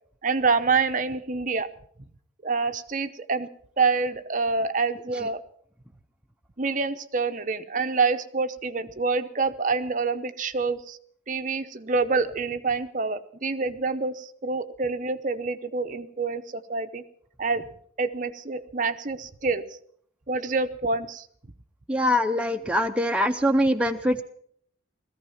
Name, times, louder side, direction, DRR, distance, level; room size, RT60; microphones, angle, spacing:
voice 1, 0.2-1.7 2.4-3.5 3.8-5.4 6.6-11.0 11.3-17.0 17.4-17.7 18.0-19.8 20.3-21.3, right 4 dB, 40° right, 9 dB, 0.8 m, -27 dB
voice 2, 21.9-24.2, equal, 5° right, 4 dB, 0.5 m, -23 dB
17.0 x 14.5 x 5.7 m, 0.63 s
head